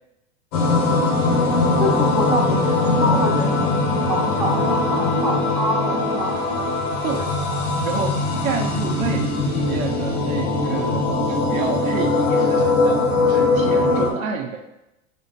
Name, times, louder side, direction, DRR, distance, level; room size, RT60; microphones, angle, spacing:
sound 1, 0.5-14.1, left 3 dB, 60° left, 1.1 m, -21 dB
voice 1, 1.2-6.3, equal, 5° right, -3 dB, 0.9 m, -26 dB
voice 2, 7.0-7.3 7.8-14.6, right 6 dB, 75° right, 4 dB, 0.7 m, -29 dB
4.2 x 2.7 x 3.9 m, 0.93 s
hypercardioid pair, 100°, 40 cm